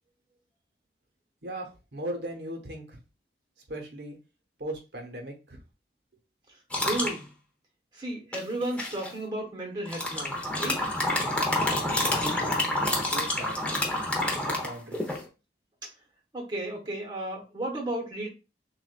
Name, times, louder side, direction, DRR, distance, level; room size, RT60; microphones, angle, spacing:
voice 1, 1.4-3.0 3.7-4.2 4.6-5.6 11.5-12.6 13.1-13.7 14.2-15.3, right 1 dB, 70° right, 1.0 m, -39 dB
voice 2, 6.5-7.3 7.9-10.8 16.3-18.3, right 1 dB, 25° right, 1.1 m, -34 dB
sound 1, 6.7-7.2 8.3-9.1 9.9-15.2, left 1 dB, 10° left, 0.8 m, -28 dB
6.3 x 2.5 x 2.4 m
head